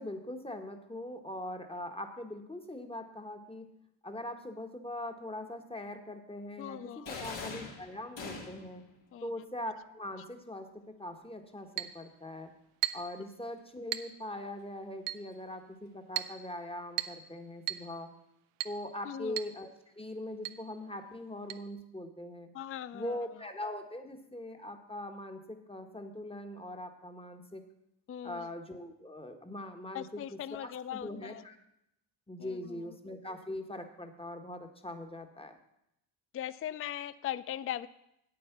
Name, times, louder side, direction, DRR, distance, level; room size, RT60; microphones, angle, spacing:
voice 1, 0.0-3.7 4.0-8.8 9.2-12.5 12.9-18.1 18.6-22.5 22.9-27.6 28.2-31.6 32.3-35.5, left 1 dB, 10° left, 6 dB, 1.6 m, -42 dB
voice 2, 6.6-7.1 9.1-9.3 19.1-19.4 22.5-23.2 28.1-28.5 29.9-31.4 32.4-32.9 36.3-37.9, left 11 dB, 30° left, 16 dB, 0.4 m, -40 dB
sound 1, 7.1-8.8, left 4 dB, 60° left, 2.5 m, -42 dB
Chink clink, 11.8-12.0 12.8-13.1 13.9-14.1 15.1-15.3 16.2-16.4 17.0-17.2 17.7-17.9 18.6-18.8 19.4-19.6 19.8-19.9 20.4-20.6 21.5-21.6, right 14 dB, 80° right, 0.7 m, -35 dB
8.7 x 8.6 x 6.0 m, 0.81 s
supercardioid pair, 55°, 49 cm